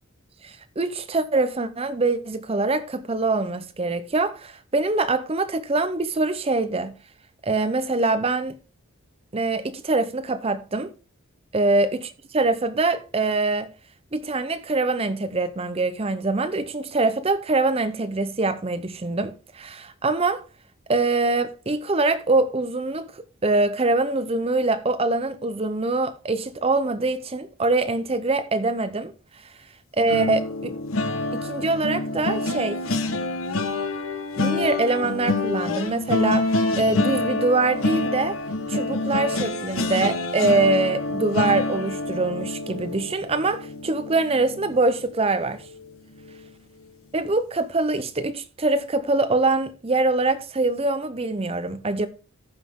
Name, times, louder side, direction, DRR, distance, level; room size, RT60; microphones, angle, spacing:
voice 1, 0.4-6.9 7.4-8.5 9.3-10.9 11.5-13.7 14.1-20.4 20.9-29.1 30.0-30.7 31.3-32.8 34.4-38.4 38.7-45.6 47.1-52.1, right 3 dB, 25° right, 0.6 m, -24 dB
sound 1, 30.1-45.2 45.6-45.9 46.2-46.4, left 2 dB, 75° left, 1.1 m, -27 dB
14.5 x 5.7 x 3.6 m
head